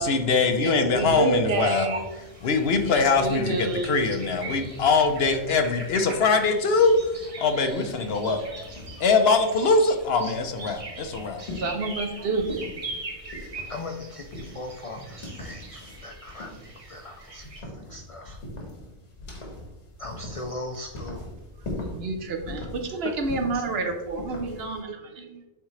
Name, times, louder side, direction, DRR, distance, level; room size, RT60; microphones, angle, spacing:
voice 1, 0.0-1.9 2.4-8.7 9.0-11.4, left 4 dB, 65° left, 6 dB, 0.9 m, -22 dB
voice 2, 0.6-2.1 2.8-3.9 6.0-6.1 11.6-12.6 13.4-13.6 21.8-25.4, right 3 dB, 65° right, 5 dB, 1.0 m, -29 dB
sound 1, 1.5-17.6, right 2 dB, 30° right, 1.0 m, -42 dB
sound 2, 8.4-24.8, left 1 dB, 85° left, 1.7 m, -41 dB
voice 3, 13.7-16.5 16.9-18.4 20.0-21.3 23.5-23.6, left 2 dB, 50° left, 4 dB, 0.4 m, -39 dB
8.0 x 3.7 x 3.2 m, 0.99 s
omnidirectional pair, 1.1 m